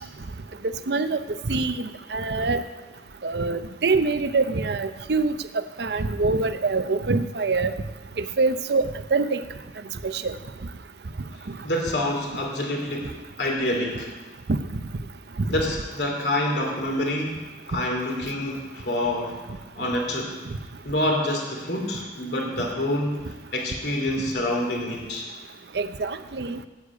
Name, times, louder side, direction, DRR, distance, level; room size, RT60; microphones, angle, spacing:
voice 1, 0.9-1.2 1.5-2.6 3.2-5.4 5.8-7.7 8.2-9.4 10.0-10.4 25.7-26.6, right 3 dB, 65° right, 12 dB, 0.6 m, -24 dB
voice 2, 11.6-14.2 15.5-17.3 17.7-19.4 19.7-20.3 20.8-23.2 23.5-25.3, left 1 dB, 70° left, 0 dB, 2.7 m, -27 dB
9.7 x 8.6 x 8.4 m, 1.2 s
head